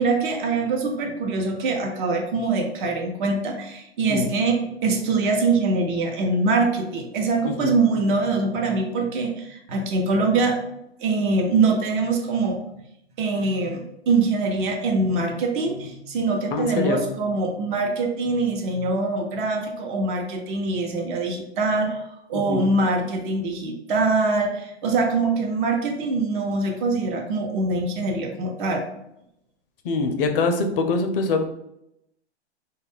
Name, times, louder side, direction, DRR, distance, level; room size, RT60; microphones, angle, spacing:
voice 1, 0.0-10.6 11.0-12.6 13.2-28.8, right 3 dB, 45° right, 2 dB, 0.7 m, -23 dB
voice 2, 16.5-17.1 22.3-22.7 29.8-31.4, left 3 dB, 55° left, 6 dB, 0.5 m, -24 dB
2.3 x 2.1 x 3.4 m, 0.81 s
hypercardioid pair, 120°, 34 cm